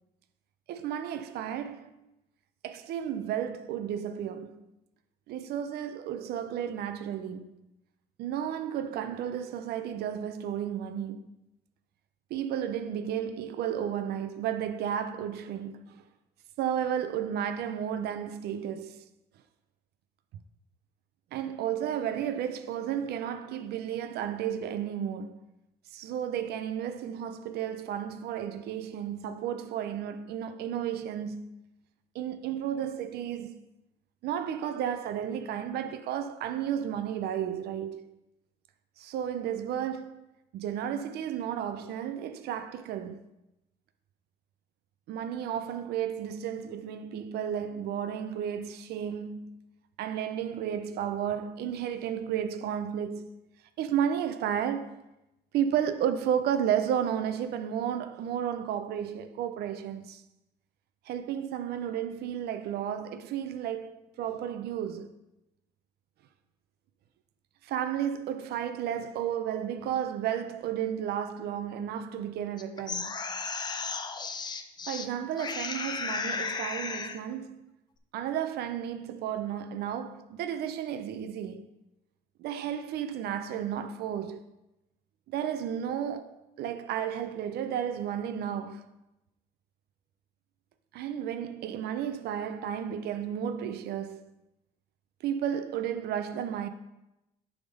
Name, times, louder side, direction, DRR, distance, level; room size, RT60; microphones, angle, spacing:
voice 1, 0.7-1.9 2.6-4.7 5.3-7.5 8.2-11.3 12.3-16.0 16.6-19.1 21.3-25.4 25.9-31.5 32.1-33.6 34.2-38.2 39.0-40.2 40.5-43.2 45.1-49.6 50.0-53.4 53.8-55.0 55.5-60.2 61.1-65.1 67.6-73.1 74.9-77.7 78.1-81.7 82.4-84.4 85.3-88.9 90.9-94.2 95.2-96.7, right 9 dB, 70° right, 0.5 m, -33 dB
sound 1, 72.6-75.1 75.4-77.2, left 5 dB, 25° left, 0.5 m, -34 dB
6.8 x 3.6 x 5.3 m
cardioid pair, 110°, 17 cm